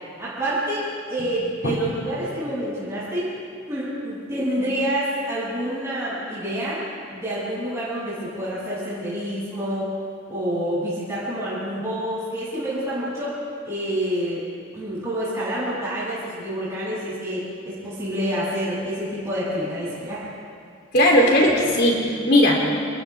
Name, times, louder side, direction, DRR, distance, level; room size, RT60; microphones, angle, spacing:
voice 1, 0.2-3.3 3.7-6.8 7.1-9.9 10.3-13.4 13.6-14.4 14.7-20.2, equal, 15° right, -11 dB, 7.7 m, -27 dB
voice 2, 20.9-22.6, left 1 dB, 50° left, -1 dB, 3.5 m, -17 dB
29.5 x 29.5 x 3.7 m, 2.3 s
head